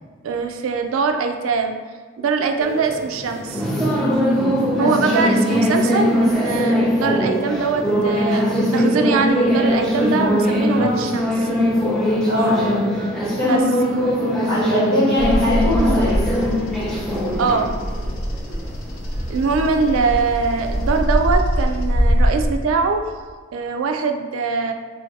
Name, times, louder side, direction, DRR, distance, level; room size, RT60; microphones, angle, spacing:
voice 1, 0.2-1.8 2.2-3.6 4.8-11.5 13.4-13.6 17.4-17.7 19.3-23.1 23.5-24.7, right 4 dB, 70° right, 5 dB, 0.4 m, -22 dB
sound 1, 2.6-21.0, equal, 5° left, 0.5 m, -21 dB
voice 2, 12.3-12.6 13.1-13.6 13.9-14.0 14.5-16.2, left 1 dB, 55° left, -7 dB, 1.1 m, -21 dB
Bird vocalization bird call bird song, 15.2-22.4, equal, 75° left, 0.7 m, -23 dB
3.1 x 2.7 x 4.4 m, 1.5 s
head